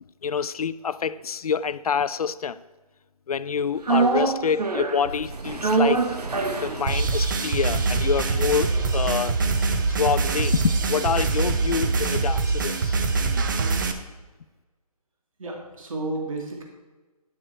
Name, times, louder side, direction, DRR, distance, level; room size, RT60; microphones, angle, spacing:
voice 1, 0.2-2.6 3.3-6.0 6.6-9.4 9.9-13.0, left 6 dB, 70° left, 16 dB, 0.5 m, -26 dB
sound 1, 3.8-12.1 12.4-12.5, right 4 dB, 85° right, 1.2 m, -28 dB
sound 2, 6.9-13.9, right 4 dB, 30° right, 0.7 m, -24 dB
voice 2, 15.4-16.6, right 2 dB, 60° right, 1 dB, 2.3 m, -32 dB
10.0 x 6.8 x 4.4 m, 1.2 s
hypercardioid pair, 160°, 20 cm